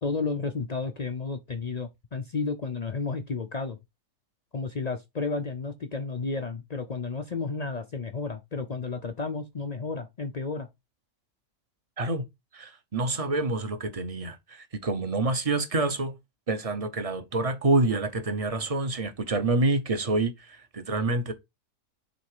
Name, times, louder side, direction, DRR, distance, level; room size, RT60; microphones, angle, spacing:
voice 1, 0.0-3.8 4.5-10.7, left 4 dB, 65° left, 0.4 m, -32 dB
voice 2, 12.5-16.2 16.5-21.3, right 2 dB, 35° right, 0.6 m, -27 dB
6.9 x 3.2 x 4.8 m
omnidirectional pair, 1.7 m